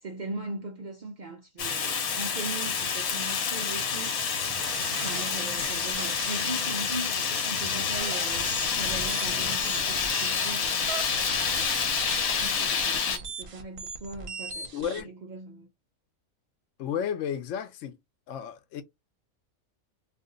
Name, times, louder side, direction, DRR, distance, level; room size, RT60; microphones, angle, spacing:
voice 1, 0.0-4.2 4.9-10.8 11.5-11.8 12.2-15.7, right 2 dB, 80° right, 0.4 m, -39 dB
Fire, 1.6-13.2, left 6 dB, 85° left, 1.2 m, -28 dB
sound 1, 4.5-15.0, right 5 dB, 50° right, 0.7 m, -40 dB
voice 2, 14.7-15.1 16.8-18.0 18.3-18.8, left 8 dB, 70° left, 0.9 m, -32 dB
2.5 x 2.5 x 3.7 m
omnidirectional pair, 1.5 m